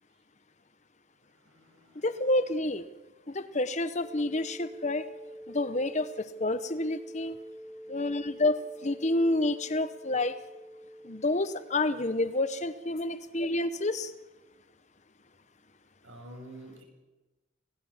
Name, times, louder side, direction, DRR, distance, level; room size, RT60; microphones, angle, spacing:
voice 1, 1.3-2.2 10.2-10.3 16.0-16.8, right 1 dB, 75° right, 2 dB, 6.9 m, -49 dB
voice 2, 2.0-2.8 3.3-5.1 5.5-7.4 7.9-10.4 11.0-14.1, left 2 dB, 35° left, 12 dB, 1.0 m, -29 dB
sound 1, 4.0-12.5, equal, 20° left, 1.6 m, -47 dB
26.0 x 17.5 x 7.3 m, 1.1 s
head